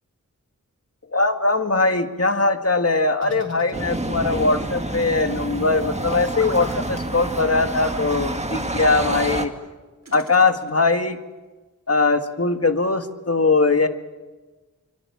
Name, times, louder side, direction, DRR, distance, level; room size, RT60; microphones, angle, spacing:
voice 1, 1.1-9.5 10.1-11.2 11.9-13.9, left 3 dB, 50° left, 7 dB, 1.8 m, -20 dB
sound 1, 3.2-4.4 6.3-6.8 7.8-8.1 8.8-9.0 10.0-10.9, right 2 dB, 55° right, 4.1 m, -41 dB
sound 2, 3.7-9.5, right 1 dB, 20° right, 1.9 m, -28 dB
25.5 x 25.0 x 7.1 m, 1.2 s
wide cardioid pair, 65°, 31 cm